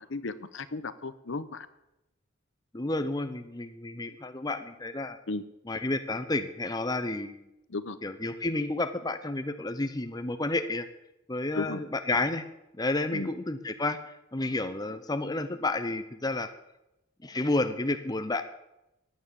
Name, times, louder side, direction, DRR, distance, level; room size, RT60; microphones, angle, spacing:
voice 1, 0.1-1.7 5.3-5.4 7.7-8.0 11.6-11.8 13.1-13.3, left 3 dB, 60° left, 13 dB, 0.8 m, -34 dB
voice 2, 2.7-5.2 5.7-7.5 8.0-10.9 11.3-12.4 12.8-16.5 17.2-18.4, left 2 dB, 20° left, 9 dB, 0.7 m, -31 dB
15.0 x 9.6 x 7.0 m, 0.91 s
head